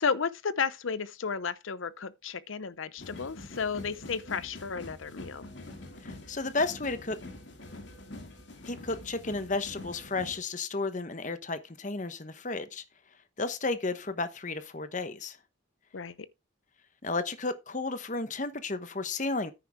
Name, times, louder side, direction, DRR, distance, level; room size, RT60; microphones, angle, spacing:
voice 1, 0.0-5.5 15.9-16.3, left 5 dB, 90° left, 0.7 m, -33 dB
sound 1, 3.0-10.4, left 2 dB, 65° left, 2.5 m, -45 dB
voice 2, 6.0-7.2 8.7-12.8 13.4-15.4 17.0-19.5, left 3 dB, 40° left, 1.0 m, -33 dB
10.0 x 9.1 x 3.6 m
head